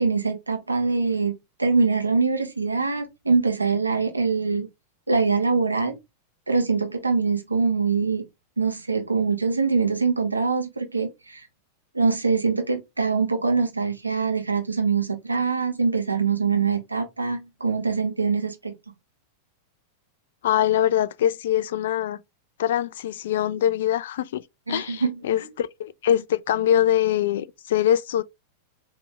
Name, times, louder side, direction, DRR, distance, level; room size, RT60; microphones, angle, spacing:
voice 1, 0.0-1.3 1.6-4.7 5.1-5.9 6.5-8.2 8.6-11.4 11.9-18.7 24.7-25.1, right 4 dB, 80° right, 1.1 m, -23 dB
voice 2, 20.4-22.2 22.6-24.4 24.7-28.2, left 10 dB, 60° left, 0.4 m, -23 dB
5.0 x 3.0 x 3.5 m
figure-of-eight pair, 90°, 0 cm